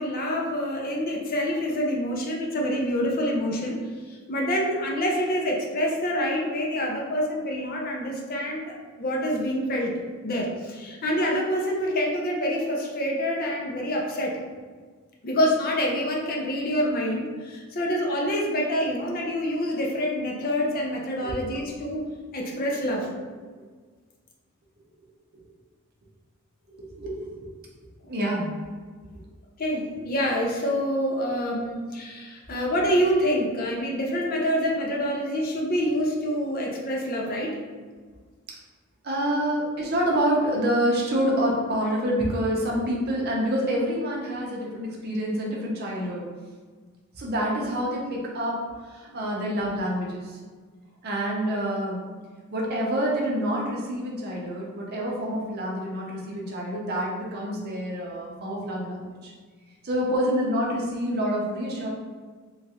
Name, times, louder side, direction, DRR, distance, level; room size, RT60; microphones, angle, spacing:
voice 1, 0.0-3.8 4.1-9.9 10.2-14.3 15.2-22.0 22.3-23.1 29.6-37.5, equal, 45° left, -1 dB, 0.5 m, -26 dB
voice 2, 27.0-27.5 28.1-28.5 39.0-46.2 47.2-50.4 51.0-52.0 52.5-59.3 59.8-61.9, equal, 50° right, -2 dB, 0.6 m, -27 dB
3.0 x 2.4 x 2.8 m, 1.5 s
head